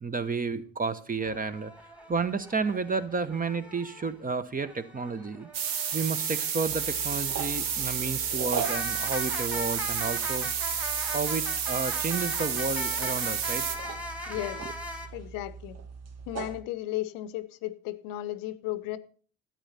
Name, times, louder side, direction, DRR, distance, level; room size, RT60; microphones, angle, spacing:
voice 1, 0.0-1.7 2.1-5.5 5.9-10.5 11.1-13.7 14.3-14.4, right 4 dB, 20° right, 1.1 m, -31 dB
sound 1, 1.2-4.1 4.6-15.1, equal, 5° right, 2.2 m, -40 dB
sound 2, 5.5-13.8, right 7 dB, 60° right, 1.4 m, -31 dB
sound 3, 6.6-16.6, right 6 dB, 40° right, 1.3 m, -41 dB
voice 2, 14.3-14.7 15.1-15.8 16.3-19.0, left 15 dB, 60° left, 0.8 m, -35 dB
13.5 x 9.0 x 4.1 m
figure-of-eight pair, 45°, 38 cm